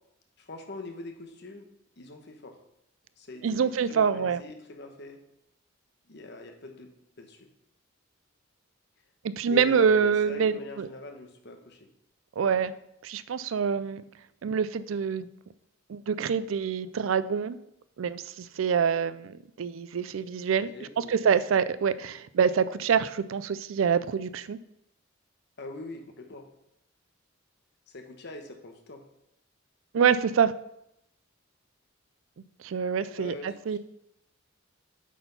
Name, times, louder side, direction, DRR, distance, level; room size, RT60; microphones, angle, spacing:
voice 1, 0.4-1.7 2.0-2.6 3.2-5.2 6.1-6.9 7.2-7.5 9.5-11.9 20.7-21.3 25.6-26.5 27.9-29.0 33.2-33.8, left 2 dB, 55° left, 5 dB, 1.1 m, -43 dB
voice 2, 3.4-4.4 9.2-10.9 12.4-12.7 13.0-14.0 14.4-15.3 15.9-17.6 18.0-24.6 29.9-30.6 32.6-33.8, right 6 dB, 75° right, 15 dB, 0.4 m, -26 dB
8.3 x 4.4 x 5.5 m, 0.79 s
head